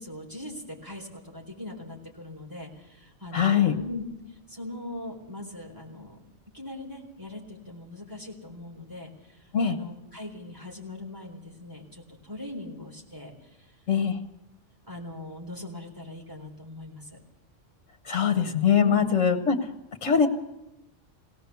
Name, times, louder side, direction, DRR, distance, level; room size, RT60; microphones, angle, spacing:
voice 1, 0.0-4.0 4.5-6.2 6.5-13.7 14.9-17.2 18.7-19.1, left 2 dB, 15° right, -1 dB, 3.9 m, -40 dB
voice 2, 3.3-3.7 9.5-9.8 13.9-14.2 18.1-19.6 20.0-20.3, left 7 dB, 75° left, 5 dB, 1.6 m, -22 dB
21.5 x 17.5 x 7.0 m, 0.91 s
omnidirectional pair, 1.3 m